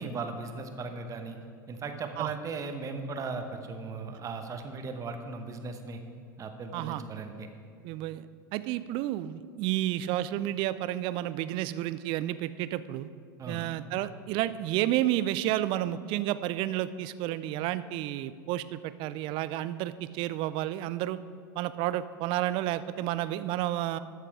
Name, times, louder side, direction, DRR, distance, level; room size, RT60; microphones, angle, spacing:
voice 1, 0.0-1.4 1.7-6.0 6.4-7.5 13.4-13.7, right 4 dB, 30° right, 6 dB, 1.0 m, -37 dB
voice 2, 6.7-7.0 7.8-8.2 8.5-13.1 13.5-21.2 21.6-24.0, right 14 dB, 45° right, 15 dB, 0.5 m, -31 dB
13.0 x 6.6 x 4.8 m, 2.2 s
hypercardioid pair, 90°, 12 cm